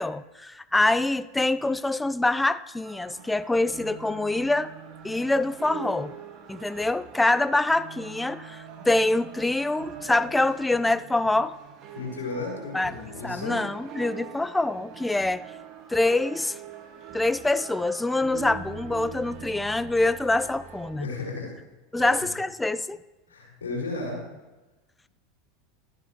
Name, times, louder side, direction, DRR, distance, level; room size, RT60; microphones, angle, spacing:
voice 1, 0.0-4.7 5.0-6.1 6.5-11.5 12.7-12.9 13.2-15.4 15.9-16.6 17.1-21.1 21.9-23.0, left 2 dB, 10° left, 16 dB, 0.4 m, -25 dB
sound 1, 2.8-20.9, right 7 dB, 45° right, 1.9 m, -43 dB
voice 2, 11.9-13.6 21.0-21.5 22.0-22.1 23.3-24.2, left 3 dB, 85° left, -3 dB, 4.3 m, -34 dB
13.0 x 11.0 x 3.2 m, 1.1 s
hypercardioid pair, 90°, 0 cm